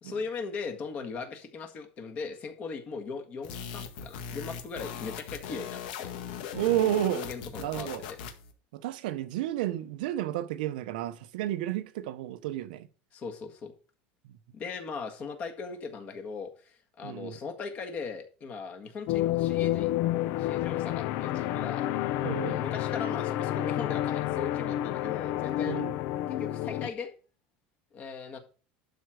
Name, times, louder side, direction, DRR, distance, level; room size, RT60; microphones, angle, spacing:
voice 1, 0.0-6.1 7.2-8.2 13.1-13.7 14.5-19.9 20.4-21.9 22.4-25.8 26.3-27.1 27.9-28.4, left 5 dB, 30° left, 1.7 m, -39 dB
sound 1, 3.4-8.5, left 7 dB, 80° left, 1.7 m, -39 dB
voice 2, 6.5-7.2 7.6-8.0 8.7-12.9 17.0-17.4 22.2-22.6 25.7-25.9, right 13 dB, 85° right, 0.9 m, -31 dB
sound 2, 19.1-26.9, left 14 dB, 50° left, 0.6 m, -29 dB
11.5 x 4.6 x 6.5 m
cardioid pair, 165°, 5 cm